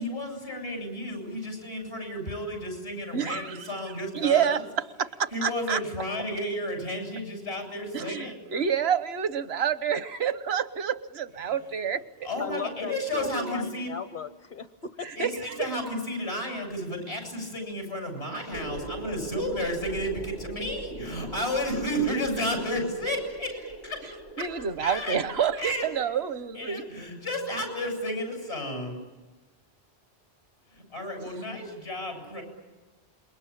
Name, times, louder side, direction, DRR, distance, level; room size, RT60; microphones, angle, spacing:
voice 1, 0.0-4.7 5.3-8.4 11.4-11.5 12.2-13.9 15.2-25.2 25.6-25.8 26.5-29.0 30.7-32.4, equal, 85° left, 3 dB, 8.2 m, -32 dB
voice 2, 3.1-3.7 4.1-4.6 5.0-5.8 7.9-12.0 15.0-15.7 24.4-26.8, right 8 dB, 80° right, 13 dB, 1.3 m, -28 dB
voice 3, 12.4-15.1, left 5 dB, 55° left, 9 dB, 1.2 m, -37 dB
sound 1, 18.5-26.3, right 2 dB, 70° left, 2.2 m, -41 dB
28.0 x 23.0 x 8.8 m, 1.1 s
omnidirectional pair, 1.0 m